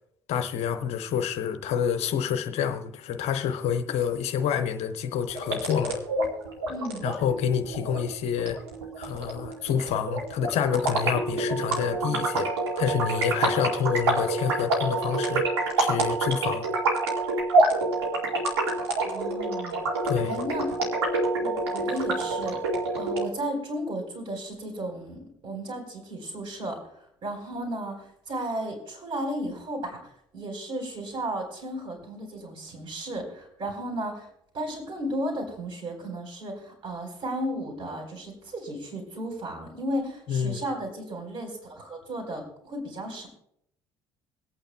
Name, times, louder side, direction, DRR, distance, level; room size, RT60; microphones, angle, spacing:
voice 1, 0.3-6.0 7.0-8.6 9.0-12.5 12.8-15.5 15.8-16.7 20.0-20.3 40.3-40.6, left 8 dB, 50° left, 0.8 m, -28 dB
sound 1, 5.3-23.3, right 2 dB, 75° right, 1.9 m, -27 dB
voice 2, 6.7-7.1 19.0-19.8 20.2-20.7 21.4-22.6 22.9-26.8 27.2-30.0 30.3-34.3 34.5-43.3, right 1 dB, 40° right, 4.4 m, -34 dB
26.0 x 8.8 x 2.3 m
figure-of-eight pair, 55°, 14 cm